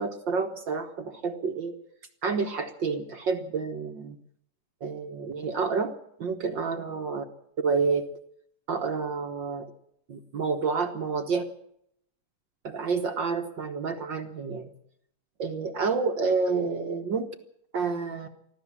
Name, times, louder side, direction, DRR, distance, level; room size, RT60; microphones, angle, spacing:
voice 1, 0.0-1.7 2.2-4.2 4.8-5.9 6.2-7.2 7.6-8.1 8.7-9.7 10.1-11.4 12.6-14.7 15.4-17.3 17.7-18.3, right 4 dB, 55° right, 5 dB, 1.4 m, -29 dB
24.0 x 15.0 x 7.4 m, 0.72 s
omnidirectional pair, 3.8 m